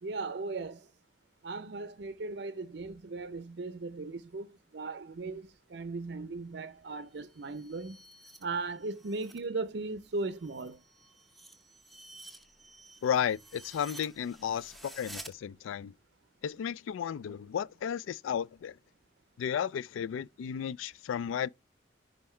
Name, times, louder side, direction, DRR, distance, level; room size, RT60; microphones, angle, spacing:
voice 1, 0.0-0.9 1.4-4.5 4.7-8.0 8.4-10.8, right 3 dB, 55° right, 0.5 m, -37 dB
sound 1, 7.1-9.5 9.8-15.3, right 1 dB, ahead, 0.6 m, -52 dB
voice 2, 13.0-15.9 16.4-18.7 19.4-21.5, left 8 dB, 85° left, 0.3 m, -33 dB
5.6 x 5.3 x 4.3 m
head